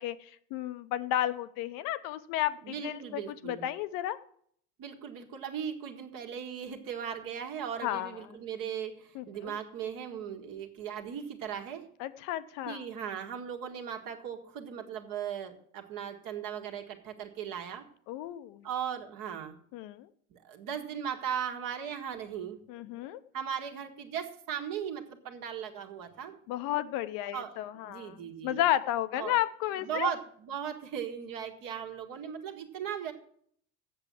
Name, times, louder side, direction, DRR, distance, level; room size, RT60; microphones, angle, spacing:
voice 1, 0.0-4.2 7.8-8.2 9.1-9.6 12.0-12.8 18.1-18.6 19.7-20.1 22.7-23.2 26.5-30.1, left 13 dB, 50° left, 12 dB, 0.7 m, -33 dB
voice 2, 2.6-3.6 4.8-11.9 12.7-17.9 18.6-19.6 20.3-22.6 23.3-26.4 27.3-27.5 27.8-28.6 29.1-29.3 29.8-33.1, right 8 dB, 50° right, 3 dB, 1.7 m, -38 dB
7.8 x 7.2 x 7.3 m, 0.63 s
hypercardioid pair, 70°, 42 cm